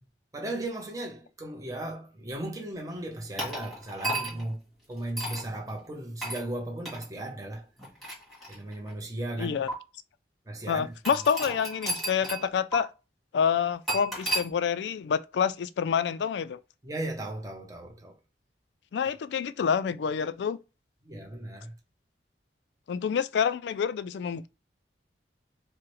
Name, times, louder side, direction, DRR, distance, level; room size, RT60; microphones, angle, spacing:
voice 1, 0.3-4.6 4.9-7.7 8.5-9.6 10.5-10.9 16.8-18.2 21.0-21.7, right 1 dB, 20° right, 0.7 m, -36 dB
sound 1, 3.4-4.5 5.2-5.5 6.2-6.4 6.9-7.1 7.8-8.9 9.7-9.8 11.1-12.5 12.7-12.8 13.9-14.5, right 1 dB, ahead, 1.5 m, -33 dB
voice 2, 9.4-9.7 10.7-12.9 13.3-16.6 18.9-20.6 22.9-24.5, left 7 dB, 75° left, 0.3 m, -27 dB
4.6 x 2.1 x 3.0 m
head